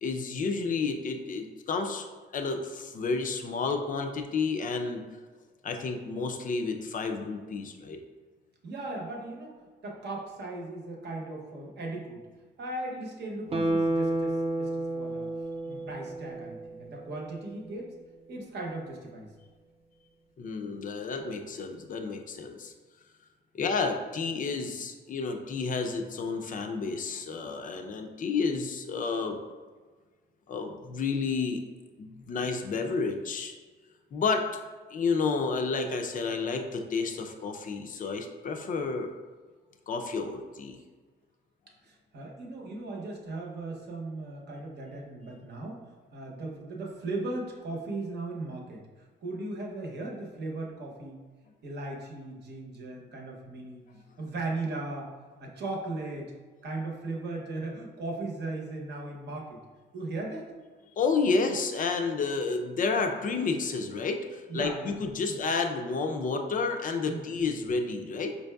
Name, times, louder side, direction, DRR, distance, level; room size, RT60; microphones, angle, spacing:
voice 1, 0.0-2.1 2.3-5.0 5.6-8.0 20.4-22.7 23.5-29.4 30.5-31.6 32.0-33.5 34.1-34.5 34.9-39.1 39.9-40.8 61.0-68.3, left 4 dB, 40° left, 5 dB, 0.4 m, -30 dB
voice 2, 8.6-9.6 9.8-12.2 12.6-15.3 15.7-17.9 18.3-19.3 41.8-45.8 46.1-48.9 49.2-51.2 51.6-53.9 54.2-55.1 55.4-56.3 56.6-59.6 59.9-60.5 64.5-65.0 65.3-65.4 67.1-67.5, right 2 dB, 60° right, 0 dB, 0.8 m, -37 dB
Guitar, 13.5-16.8 17.1-17.2, right 1 dB, 30° right, 0.4 m, -30 dB
4.5 x 2.6 x 2.2 m, 1.4 s
cardioid pair, 90°, 20 cm